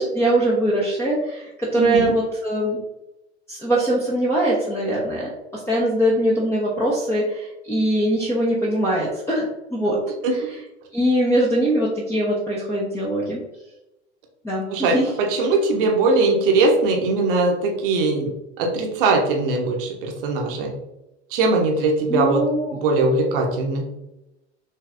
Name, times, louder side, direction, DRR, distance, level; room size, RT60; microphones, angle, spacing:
voice 1, 0.0-2.8 3.5-10.0 10.3-10.4 10.9-13.4 14.4-15.1 22.1-22.8, right 1 dB, 10° left, -5 dB, 1.0 m, -22 dB
voice 2, 1.8-2.1 10.2-10.3 14.7-18.3 18.6-20.7 21.3-22.4 22.8-23.9, right 3 dB, 55° right, 2 dB, 1.2 m, -20 dB
6.5 x 3.2 x 2.6 m, 0.93 s
figure-of-eight pair, 85°, 33 cm